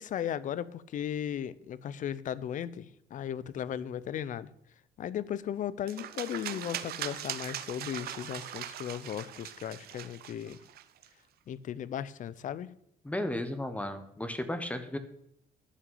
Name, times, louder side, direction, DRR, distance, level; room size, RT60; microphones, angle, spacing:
voice 1, 0.0-4.5 5.0-10.6 11.5-12.7, left 9 dB, 50° left, 0.6 m, -36 dB
sound 1, 5.9-11.1, right 11 dB, 65° right, 0.8 m, -40 dB
voice 2, 13.0-15.0, left 1 dB, 10° left, 1.1 m, -34 dB
11.0 x 5.9 x 8.5 m
cardioid pair, 110°, 17 cm